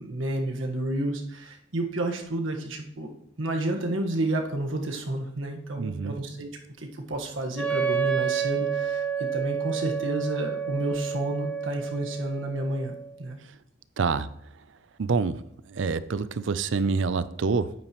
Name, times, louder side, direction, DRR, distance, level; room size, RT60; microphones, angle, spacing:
voice 1, 0.0-6.5 6.8-13.4, right 1 dB, 90° right, 2 dB, 1.4 m, -30 dB
voice 2, 5.8-6.1 14.0-14.3 15.0-15.4 15.7-17.7, right 4 dB, 75° right, 15 dB, 0.5 m, -26 dB
Wind instrument woodwind instrument, 7.5-13.2, right 7 dB, 5° left, 1.4 m, -30 dB
9.1 x 8.8 x 3.1 m, 0.73 s
head